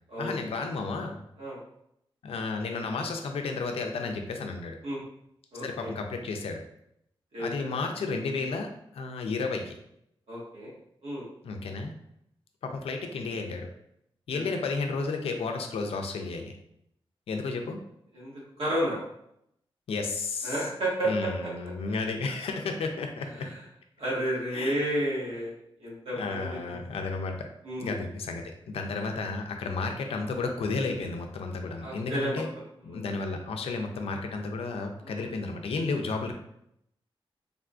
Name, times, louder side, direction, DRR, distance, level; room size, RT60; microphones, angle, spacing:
voice 1, 0.2-1.2 2.2-4.8 5.6-6.6 7.4-9.7 11.4-11.9 12.6-13.7 14.3-16.5 17.3-17.8 19.9-20.6 21.0-23.5 24.5-24.9 26.1-27.5 27.8-32.5 32.8-36.3, left 3 dB, 85° left, 4 dB, 0.4 m, -32 dB
voice 2, 5.5-5.9 7.3-7.7 10.3-10.7 11.0-11.2 14.3-14.6 18.1-19.0 20.4-21.5 23.4-23.6 24.0-26.9 27.6-27.9 31.8-32.4 32.9-33.0 35.0-35.3, right 1 dB, 85° right, -7 dB, 1.4 m, -32 dB
3.5 x 2.4 x 2.3 m, 0.76 s
wide cardioid pair, 115°, 10 cm